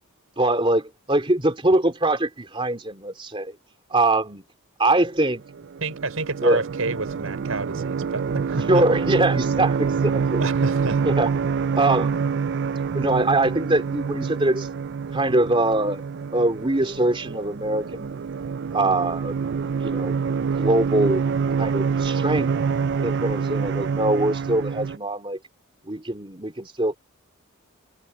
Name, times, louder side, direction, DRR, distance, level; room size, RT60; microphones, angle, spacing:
voice 1, 0.4-3.5 3.9-4.4 4.8-5.4 6.4-6.6 8.6-10.4 11.0-12.2 12.9-14.7 15.1-16.0 16.3-18.2 18.7-19.4 19.8-20.2 20.4-21.3 21.6-22.5 23.0-25.4 25.8-27.0, right 2 dB, 25° right, 2.9 m, -23 dB
sound 1, 5.5-25.0, right 5 dB, 50° right, 0.4 m, -26 dB
voice 2, 5.8-8.8 10.4-11.0, right 3 dB, 75° right, 6.0 m, -29 dB
head